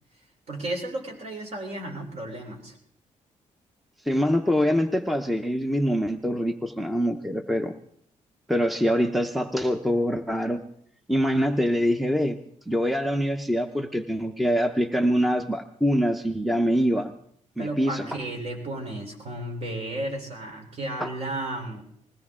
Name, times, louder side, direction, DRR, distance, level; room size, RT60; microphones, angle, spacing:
voice 1, 0.5-2.8 17.6-21.8, right 1 dB, 55° right, 2 dB, 3.4 m, -33 dB
voice 2, 4.0-7.7 8.5-10.6 11.1-12.4 12.7-17.1 17.6-18.1 21.0-21.1, equal, ahead, 8 dB, 0.6 m, -24 dB
20.5 x 16.5 x 3.6 m, 0.65 s
cardioid pair, 145°, 13 cm